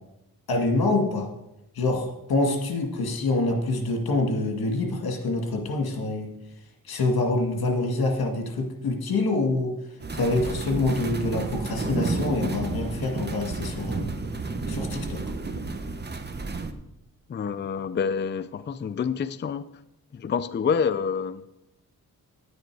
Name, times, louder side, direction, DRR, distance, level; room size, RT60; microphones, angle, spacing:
voice 1, 0.5-1.3 1.8-6.3 6.9-9.8 10.1-14.1 14.7-15.2, left 2 dB, 80° left, 3 dB, 1.9 m, -26 dB
sound 1, 10.0-16.7, right 3 dB, 30° right, 0.9 m, -31 dB
voice 2, 17.3-19.6 20.1-21.4, left 6 dB, 30° left, 13 dB, 0.4 m, -27 dB
10.0 x 9.4 x 4.7 m, 0.88 s
wide cardioid pair, 105°, 36 cm